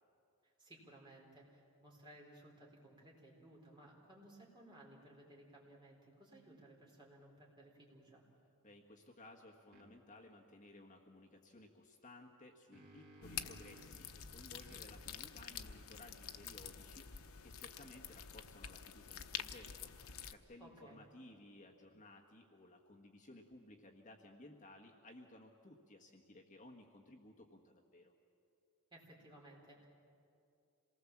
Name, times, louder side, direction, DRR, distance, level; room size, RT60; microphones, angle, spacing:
voice 1, 0.4-8.2 20.6-21.0 28.9-29.9, right 1 dB, 20° right, -2 dB, 4.5 m, -59 dB
voice 2, 8.6-28.1, left 1 dB, 35° left, 0 dB, 1.5 m, -58 dB
sound 1, 9.7-9.9 12.3-14.1 14.6-17.9, right 1 dB, 45° right, 2.6 m, -63 dB
sound 2, 13.2-20.3, left 8 dB, 75° left, 0.9 m, -48 dB
27.0 x 19.5 x 7.3 m, 2.5 s
head